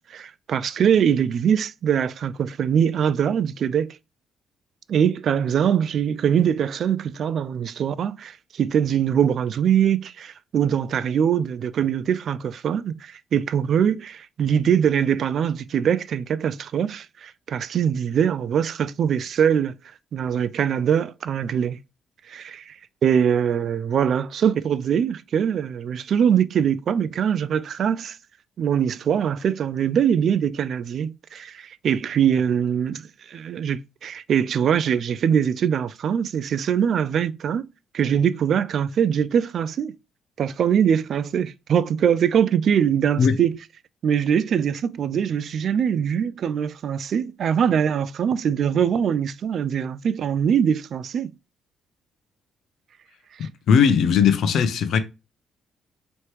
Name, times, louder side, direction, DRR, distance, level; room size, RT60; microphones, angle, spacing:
voice 1, 0.1-4.0 4.9-19.7 20.1-21.8 22.3-22.8 23.0-28.2 28.6-33.0 33.3-37.7 37.9-39.9 40.4-43.5 44.0-51.3 53.4-53.5, right 8 dB, 60° right, 0.3 m, -22 dB
voice 2, 53.7-55.0, left 7 dB, 75° left, 0.7 m, -18 dB
4.5 x 3.1 x 3.2 m
cardioid pair, 90°, 0 cm